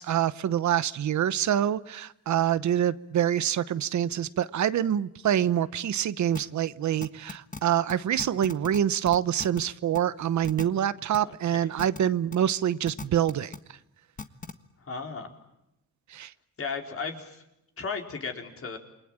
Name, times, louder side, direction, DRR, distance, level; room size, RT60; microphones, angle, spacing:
voice 1, 0.0-13.5 16.1-16.3, right 10 dB, 70° right, 15 dB, 1.0 m, -26 dB
sound 1, 6.3-6.4 7.0-7.6 7.9-8.0 8.2-8.8 9.0-9.6 9.9-10.0 10.4-10.6 11.1-11.2 11.8-12.0 12.3-12.4 12.9-13.6 14.2-14.5, left 4 dB, 25° left, 1.5 m, -37 dB
voice 2, 11.2-11.7 14.8-15.3 16.6-17.4 17.8-18.8, left 5 dB, 50° left, 3 dB, 4.2 m, -35 dB
28.5 x 22.5 x 8.8 m, 0.86 s
cardioid pair, 105°, 30 cm